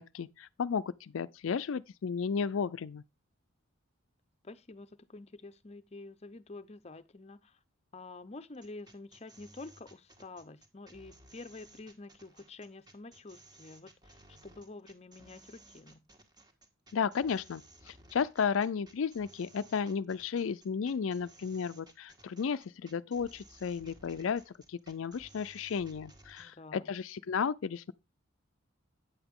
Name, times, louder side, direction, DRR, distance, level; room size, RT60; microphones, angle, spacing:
voice 1, 0.0-3.0 16.9-27.9, left 6 dB, 75° left, 0.4 m, -33 dB
voice 2, 4.4-7.6 7.9-14.2 14.4-16.0 26.4-26.9, left 3 dB, 30° left, 0.7 m, -48 dB
sound 1, 8.5-26.5, right 1 dB, 20° right, 1.7 m, -58 dB
9.4 x 8.0 x 3.6 m
head